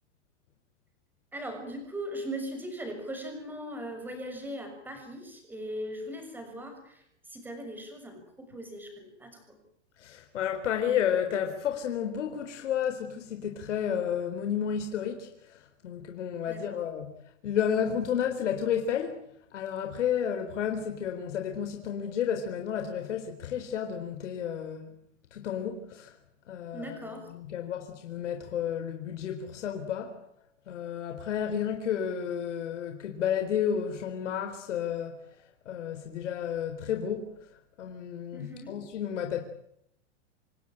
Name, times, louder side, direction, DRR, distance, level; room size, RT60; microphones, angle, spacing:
voice 1, 1.3-7.0 7.3-9.6 16.5-16.8 26.7-27.3 38.3-38.7, equal, 5° right, 6 dB, 6.4 m, -39 dB
voice 2, 10.0-17.1 17.4-19.2 19.5-24.9 25.3-26.1 26.5-30.2 30.7-35.2 35.7-37.3 37.8-39.4, left 8 dB, 80° left, 6 dB, 4.1 m, -31 dB
27.5 x 19.0 x 9.0 m, 0.74 s
supercardioid pair, 165°, 36 cm